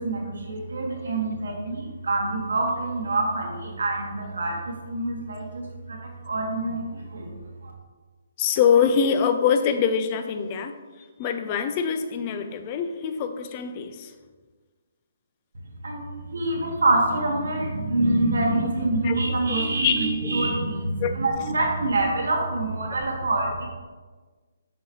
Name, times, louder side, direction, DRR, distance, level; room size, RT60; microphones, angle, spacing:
voice 1, 0.0-7.7 15.8-23.7, right 2 dB, 85° right, -1 dB, 1.4 m, -26 dB
voice 2, 8.4-10.7 11.2-14.1 19.0-19.2 19.5-19.9 21.0-21.2, left 7 dB, 25° left, 8 dB, 0.4 m, -24 dB
5.6 x 5.5 x 3.0 m, 1.4 s
hypercardioid pair, 170°, 0 cm